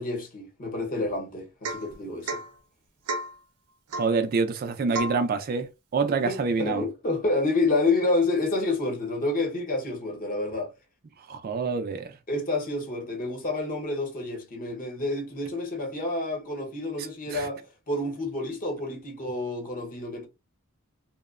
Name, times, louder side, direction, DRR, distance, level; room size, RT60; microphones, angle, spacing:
voice 1, 0.0-2.4 6.3-10.7 12.3-20.3, left 2 dB, 40° left, 0.9 m, -29 dB
Domestic sounds home sounds / Chink clink / Drip, 1.6-1.9 2.3-2.5 3.1-3.4 3.9-4.2 4.9-5.2, right 2 dB, 85° right, 0.6 m, -32 dB
voice 2, 4.0-6.8 11.3-12.1 17.3-17.5, right 4 dB, 45° right, 0.3 m, -26 dB
2.8 x 2.0 x 2.4 m
head